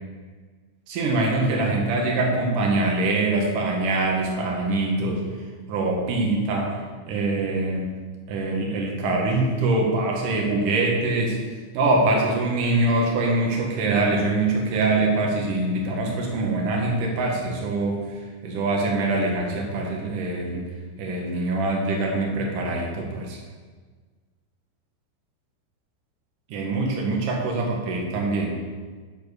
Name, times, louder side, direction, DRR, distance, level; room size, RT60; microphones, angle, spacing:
voice 1, 0.9-5.2 5.7-6.8 7.1-7.9 8.3-11.4 11.7-20.6 21.0-23.4 26.5-28.5, right 2 dB, 60° right, -1 dB, 2.8 m, -24 dB
9.7 x 7.3 x 5.1 m, 1.5 s
omnidirectional pair, 4.8 m